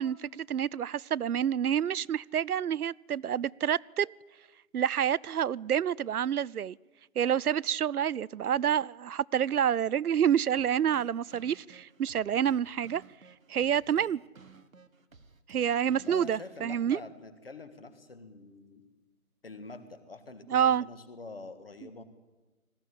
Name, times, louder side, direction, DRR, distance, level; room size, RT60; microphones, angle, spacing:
voice 1, 0.0-4.1 4.7-6.8 7.2-13.0 13.5-14.2 15.5-17.0 20.5-20.8, right 9 dB, 85° right, 0.6 m, -28 dB
sound 1, 10.6-16.6, right 5 dB, 70° right, 1.5 m, -56 dB
voice 2, 15.9-18.8 19.4-22.0, left 3 dB, 40° left, 1.7 m, -46 dB
19.5 x 14.5 x 9.9 m
figure-of-eight pair, 170°, 43 cm